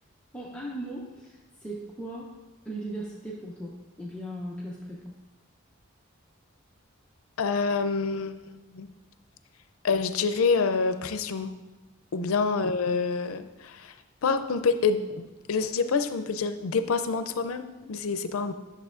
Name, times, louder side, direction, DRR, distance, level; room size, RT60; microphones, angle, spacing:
voice 1, 0.3-2.4 2.6-5.1 12.1-12.3, right 1 dB, 5° left, -5 dB, 0.6 m, -38 dB
voice 2, 7.4-8.9 9.8-11.5 12.1-13.9 14.2-18.5, left 4 dB, 90° left, 10 dB, 0.5 m, -27 dB
10.5 x 6.7 x 2.5 m, 1.1 s
head